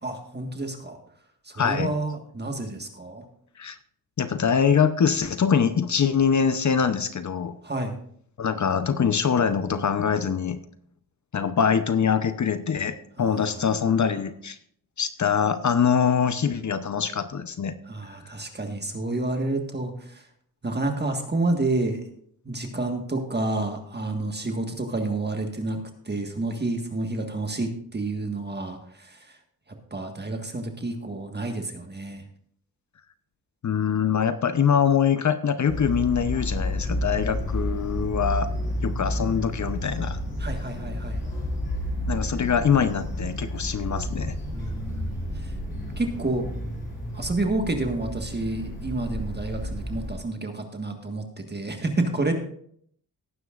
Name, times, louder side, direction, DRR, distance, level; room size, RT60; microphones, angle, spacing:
voice 1, 0.0-1.0 1.4-3.2 7.6-8.0 13.2-14.0 17.8-20.3 20.6-22.1 22.4-29.4 29.7-32.2 40.4-41.2 44.5-45.6 45.9-46.5 47.1-52.3, right 2 dB, 25° right, 4 dB, 1.6 m, -29 dB
voice 2, 1.6-1.9 3.6-3.8 4.2-7.6 8.4-10.6 11.3-14.6 15.0-17.7 33.6-38.5 38.8-40.2 42.1-44.4, left 7 dB, 45° left, 10 dB, 0.8 m, -23 dB
sound 1, 35.7-50.2, equal, 30° left, 5.0 m, -31 dB
18.0 x 9.5 x 2.5 m, 0.63 s
cardioid pair, 90°, 39 cm